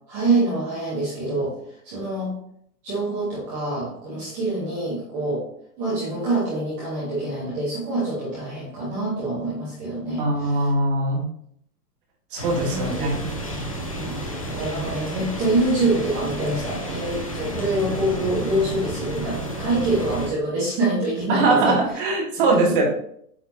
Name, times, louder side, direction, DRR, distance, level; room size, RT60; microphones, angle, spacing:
voice 1, 0.1-1.5 1.8-2.3 2.8-5.5 5.8-10.7 12.7-13.2 14.0-14.1 14.5-21.8 22.5-22.8, right 2 dB, 15° right, -8 dB, 0.9 m, -25 dB
voice 2, 10.2-11.2 12.3-13.2 21.3-22.8, right 2 dB, 30° right, -1 dB, 1.7 m, -21 dB
sound 1, 12.4-20.3, right 1 dB, 25° left, 0.4 m, -31 dB
8.2 x 4.2 x 2.7 m, 0.68 s
hypercardioid pair, 170°, 49 cm